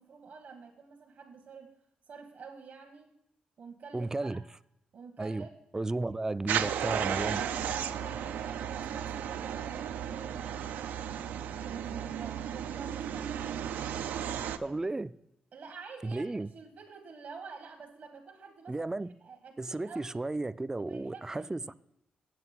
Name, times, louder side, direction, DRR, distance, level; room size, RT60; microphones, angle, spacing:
voice 1, 0.0-1.7 2.1-3.1 3.6-4.4 4.9-5.6 7.2-10.7 11.6-13.4 13.9-14.9 15.5-18.9 19.2-20.3 20.7-21.7, right 5 dB, 65° right, 1.0 m, -49 dB
voice 2, 3.9-4.4 5.2-5.5 5.7-7.4 14.6-15.1 16.0-16.5 18.7-19.1 19.6-21.7, right 2 dB, 20° right, 0.3 m, -33 dB
sound 1, 6.5-14.6, right 9 dB, 90° right, 0.4 m, -34 dB
7.9 x 7.7 x 5.7 m
cardioid pair, 75°, 3 cm